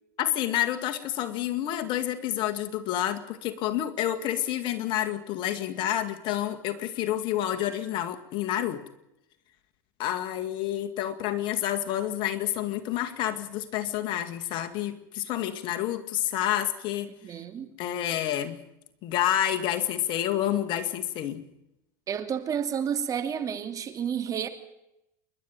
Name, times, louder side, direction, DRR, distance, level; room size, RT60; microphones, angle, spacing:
voice 1, 0.2-8.8 10.0-17.1 17.8-18.6 19.0-21.4, left 12 dB, 50° left, 7 dB, 2.1 m, -29 dB
voice 2, 17.2-17.7 22.1-24.5, right 8 dB, 35° right, 7 dB, 2.8 m, -30 dB
28.5 x 12.0 x 9.1 m, 0.85 s
hypercardioid pair, 100°, 10 cm